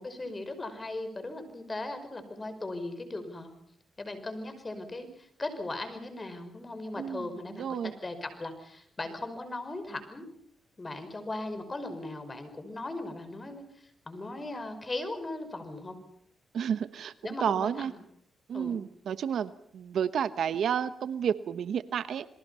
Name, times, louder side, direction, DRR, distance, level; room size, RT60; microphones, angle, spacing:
voice 1, 0.0-3.5 4.0-10.3 10.8-16.0 17.2-18.0 18.5-18.8, left 2 dB, 25° left, 9 dB, 5.4 m, -38 dB
voice 2, 6.9-7.9 16.5-17.1 17.4-17.9 18.5-22.3, right 8 dB, 75° right, 13 dB, 1.1 m, -31 dB
29.0 x 22.5 x 5.7 m, 0.67 s
cardioid pair, 80°, 0 cm